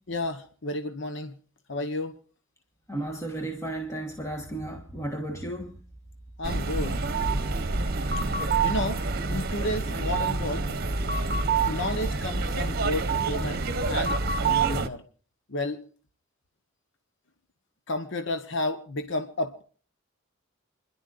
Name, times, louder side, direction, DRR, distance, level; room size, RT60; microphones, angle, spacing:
voice 1, 0.1-1.3 1.7-2.1 6.4-7.0 8.6-10.7 11.6-14.2 14.4-15.0 15.5-15.8 17.9-19.6, left 1 dB, 65° left, 1.0 m, -32 dB
voice 2, 2.9-5.7, right 1 dB, 15° left, 1.4 m, -34 dB
sound 1, 6.4-14.9, right 4 dB, 50° right, 1.0 m, -27 dB
29.0 x 11.0 x 2.5 m
head